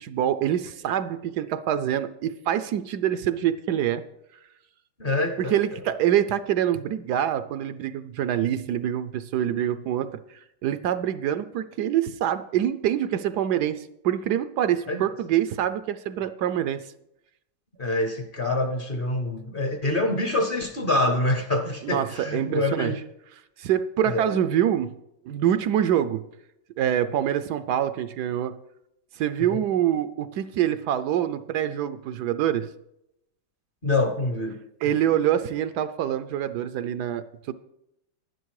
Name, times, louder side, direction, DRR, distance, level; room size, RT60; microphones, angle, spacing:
voice 1, 0.0-4.0 5.4-10.2 10.6-16.8 21.8-22.9 23.6-24.9 25.2-26.2 26.8-28.6 29.2-32.7 34.8-37.5, right 10 dB, 75° right, 12 dB, 1.1 m, -25 dB
voice 2, 5.0-5.5 14.9-15.0 17.8-23.0 24.1-24.4 29.5-29.6 33.8-34.6, left 2 dB, 40° left, 6 dB, 0.9 m, -26 dB
11.0 x 10.5 x 4.7 m, 0.82 s
omnidirectional pair, 1.9 m